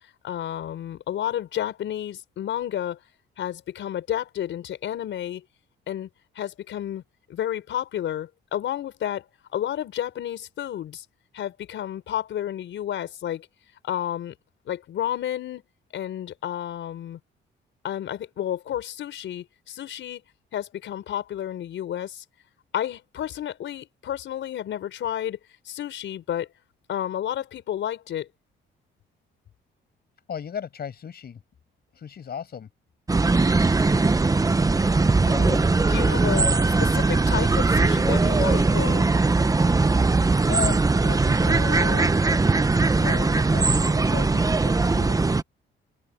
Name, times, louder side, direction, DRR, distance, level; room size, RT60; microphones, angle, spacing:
voice 1, 0.2-3.0 3.4-5.4 5.9-6.1 6.3-7.0 7.3-9.2 9.5-11.0 11.3-13.5 13.8-14.3 14.6-15.6 15.9-17.2 17.8-20.2 20.5-22.2 22.7-25.4 25.6-26.5 26.9-28.3 35.3-35.6 35.9-39.1, left 11 dB, 70° left, 5.0 m, -31 dB
voice 2, 30.3-31.4 31.9-32.7 40.5-42.1 43.0-45.2, left 8 dB, 55° left, 5.8 m, -35 dB
sound 1, 33.1-45.4, right 3 dB, 15° right, 0.9 m, -20 dB
cardioid pair, 90°, 20 cm